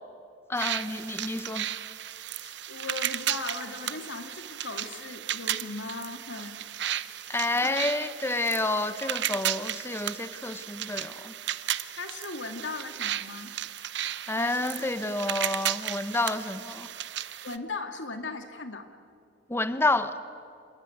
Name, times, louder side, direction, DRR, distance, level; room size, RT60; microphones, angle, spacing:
voice 1, 0.5-1.7 7.3-11.3 14.3-16.9 19.5-20.1, left 2 dB, 15° left, 12 dB, 0.9 m, -29 dB
sound 1, 0.6-17.6, right 11 dB, 65° right, 0.8 m, -34 dB
voice 2, 2.4-6.7 7.5-7.9 12.0-13.5 14.4-15.2 16.1-16.2 17.4-18.9, left 3 dB, 75° left, 6 dB, 2.2 m, -38 dB
27.5 x 21.5 x 9.2 m, 2.4 s
head